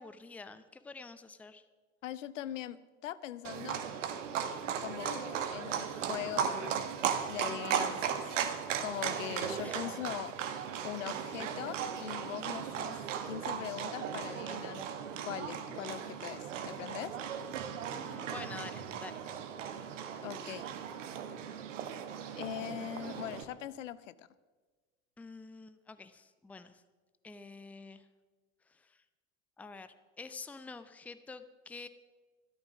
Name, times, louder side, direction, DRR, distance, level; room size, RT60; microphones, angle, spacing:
voice 1, 0.0-1.6 9.6-9.8 17.9-19.2 25.2-26.8 27.2-28.0 28.7-29.0 29.6-29.9 30.2-31.9, left 4 dB, 5° left, 12 dB, 0.6 m, -48 dB
voice 2, 2.0-3.8 4.8-6.8 7.3-8.3 8.8-10.3 10.8-13.0 13.2-14.8 15.2-17.2 20.2-20.6 22.4-24.3, left 12 dB, 70° left, 17 dB, 0.7 m, -41 dB
Livestock farm animals working animals, 3.4-23.4, right 8 dB, 65° right, 1.3 m, -37 dB
14.5 x 12.5 x 5.9 m, 1.4 s
figure-of-eight pair, 75°, 39 cm